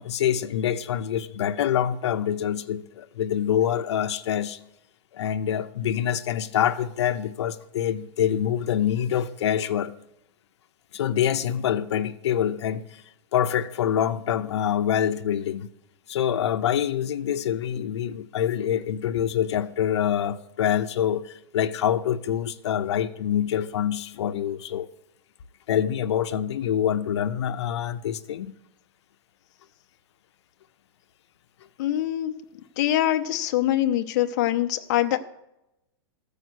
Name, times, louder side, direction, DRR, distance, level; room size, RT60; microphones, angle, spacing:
voice 1, 0.0-4.6 5.1-9.9 10.9-13.0 13.3-15.7 16.1-24.9 25.7-28.5, left 9 dB, 85° left, 0.6 m, -25 dB
voice 2, 31.8-32.3 32.8-35.2, left 13 dB, 45° left, 0.7 m, -24 dB
14.5 x 5.0 x 6.3 m
supercardioid pair, 175°, 14 cm